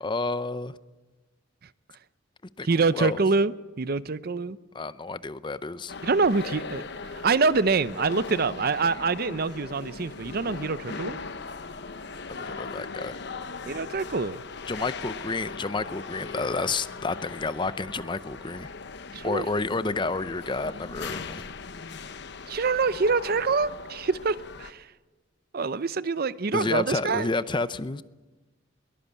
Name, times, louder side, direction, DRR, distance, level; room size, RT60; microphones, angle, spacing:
voice 1, 0.0-0.7 2.6-3.2 4.7-5.9 12.3-13.2 14.7-18.7 19.2-21.4 26.5-28.0, left 3 dB, 25° left, 0.6 m, -30 dB
voice 2, 2.6-4.6 6.0-11.2 13.7-14.4 19.1-19.5 22.5-24.9 25.5-27.3, right 4 dB, 50° right, 0.6 m, -26 dB
sound 1, 5.9-24.7, left 4 dB, 60° left, 1.0 m, -39 dB
22.0 x 19.0 x 8.4 m
head